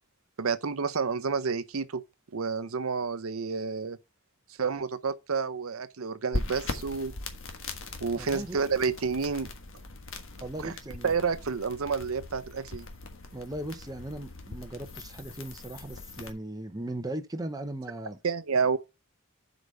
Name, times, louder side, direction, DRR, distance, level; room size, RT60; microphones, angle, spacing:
voice 1, 0.4-2.0 2.3-4.0 4.6-7.1 8.0-9.5 10.6-10.7 11.0-12.9 18.2-18.8, right 5 dB, 80° right, 0.7 m, -29 dB
sound 1, 6.3-16.3, left 2 dB, 65° left, 1.5 m, -40 dB
voice 2, 8.2-8.6 10.4-11.1 13.3-18.2, right 1 dB, 20° right, 0.8 m, -38 dB
8.0 x 5.1 x 5.4 m
head